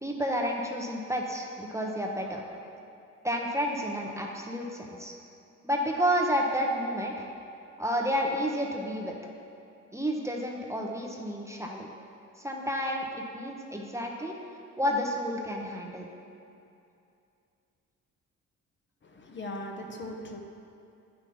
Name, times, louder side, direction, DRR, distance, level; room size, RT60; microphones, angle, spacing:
voice 1, 0.0-2.4 3.2-5.1 5.6-7.2 7.8-9.1 9.9-11.9 12.4-14.4 14.8-16.1, equal, 10° right, 0 dB, 0.8 m, -30 dB
voice 2, 19.0-20.4, left 1 dB, 40° left, 2 dB, 0.9 m, -39 dB
9.8 x 5.4 x 4.3 m, 2.6 s
cardioid pair, 90°, 30 cm